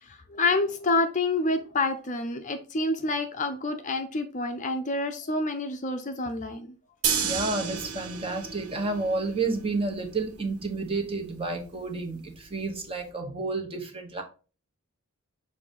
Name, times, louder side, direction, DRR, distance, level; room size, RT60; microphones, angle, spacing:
voice 1, 0.0-6.7, left 2 dB, 35° left, 7 dB, 0.6 m, -28 dB
sound 1, 7.0-13.1, right 7 dB, 85° right, 1.1 m, -34 dB
voice 2, 7.2-14.2, right 3 dB, 25° right, 3 dB, 1.1 m, -30 dB
6.6 x 2.8 x 5.1 m, 0.36 s
head